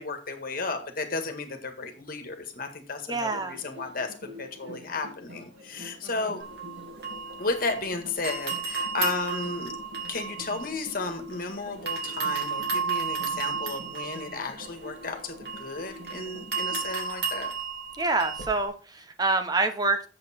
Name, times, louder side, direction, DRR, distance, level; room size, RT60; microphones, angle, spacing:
voice 1, 0.0-6.4 7.4-9.7 10.1-17.5, left 3 dB, 50° left, 6 dB, 1.7 m, -33 dB
voice 2, 3.1-3.6 18.0-20.1, right 3 dB, 20° right, 7 dB, 0.8 m, -26 dB
sound 1, 3.3-16.9, left 1 dB, 80° right, 1.8 m, -46 dB
sound 2, 6.4-7.9 8.2-11.4 11.9-18.6, right 6 dB, 65° right, 3.3 m, -33 dB
8.1 x 7.6 x 4.4 m, 0.36 s
head